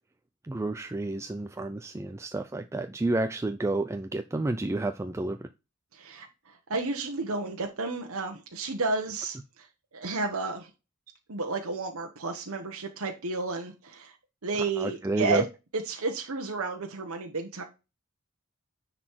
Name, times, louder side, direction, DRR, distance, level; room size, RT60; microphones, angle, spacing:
voice 1, 0.4-5.5 14.8-15.4, right 2 dB, 15° right, 8 dB, 0.3 m, -30 dB
voice 2, 5.9-6.3 6.7-9.4 9.9-10.7 11.3-14.1 14.4-15.4 15.7-17.6, right 3 dB, 85° right, 3 dB, 1.1 m, -31 dB
9.7 x 4.1 x 4.6 m, 0.28 s
head